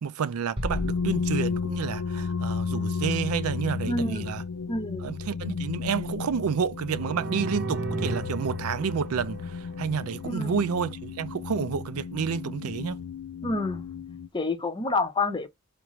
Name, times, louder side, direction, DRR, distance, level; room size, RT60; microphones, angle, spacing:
voice 1, 0.0-4.4 5.0-13.0, right 6 dB, 85° right, 0.4 m, -30 dB
sound 1, 0.6-2.1, left 1 dB, 25° right, 0.8 m, -35 dB
sound 2, 0.7-14.3, left 5 dB, 75° left, 0.4 m, -33 dB
voice 2, 3.9-4.3 4.7-5.1 10.2-10.6 13.4-13.8 14.3-15.5, left 3 dB, 20° left, 0.6 m, -28 dB
sound 3, 6.9-10.6, right 3 dB, 55° right, 0.8 m, -35 dB
4.4 x 2.5 x 3.0 m
head